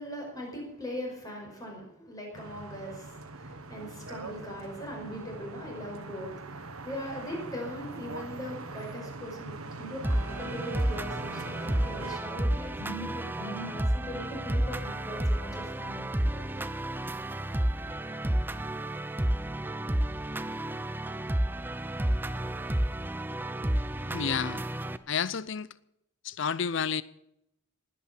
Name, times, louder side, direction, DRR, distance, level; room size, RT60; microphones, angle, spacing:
voice 1, 0.0-16.6, equal, 15° left, 5.5 m, -40 dB
sound 1, 2.3-12.2, right 3 dB, 90° right, 1.5 m, -42 dB
sound 2, 10.0-25.0, right 1 dB, 10° right, 0.6 m, -31 dB
voice 2, 24.1-24.6 25.1-25.7 26.2-27.0, left 6 dB, 60° left, 0.6 m, -30 dB
19.5 x 8.6 x 7.5 m
head